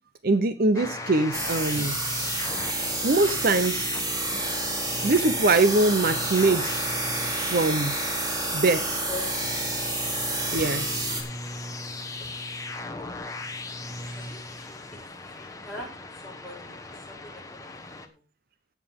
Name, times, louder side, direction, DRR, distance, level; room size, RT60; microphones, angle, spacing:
voice 1, 0.2-2.0 3.0-3.9 5.0-6.7 7.4-7.9 8.5-9.0 10.5-11.1, right 2 dB, 60° right, 11 dB, 0.8 m, -23 dB
sound 1, 0.7-18.1, left 2 dB, 20° left, 1.3 m, -38 dB
sound 2, 1.3-11.2, right 1 dB, 20° right, 3.3 m, -29 dB
voice 2, 14.1-15.9 16.2-18.1, left 2 dB, ahead, -4 dB, 7.6 m, -43 dB
17.0 x 7.3 x 3.7 m, 0.30 s
head